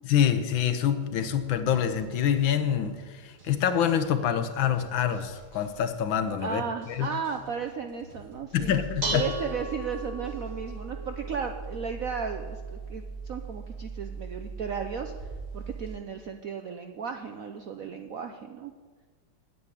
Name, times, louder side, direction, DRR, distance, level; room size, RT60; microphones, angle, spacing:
voice 1, 0.0-7.1 8.5-9.3, left 9 dB, 70° left, 10 dB, 1.5 m, -26 dB
sound 1, 0.8-12.5, right 3 dB, 85° right, 4.0 m, -53 dB
voice 2, 6.4-8.8 9.1-18.7, right 6 dB, 65° right, 5 dB, 0.8 m, -35 dB
Dishes pots and pans, 8.6-16.0, right 3 dB, 35° right, 1.8 m, -37 dB
9.6 x 8.4 x 9.8 m, 1.5 s
omnidirectional pair, 2.3 m